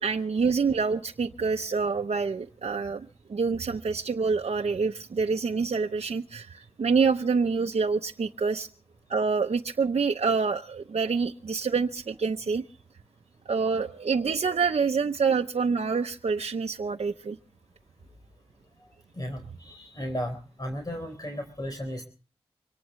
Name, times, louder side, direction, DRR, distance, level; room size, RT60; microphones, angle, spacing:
voice 1, 0.0-8.7 9.1-12.6 13.5-17.4, right 5 dB, 80° right, 3 dB, 0.8 m, -27 dB
voice 2, 19.1-22.1, equal, 35° left, 4 dB, 4.0 m, -35 dB
25.0 x 18.5 x 3.1 m, 0.40 s
wide cardioid pair, 55°, 11 cm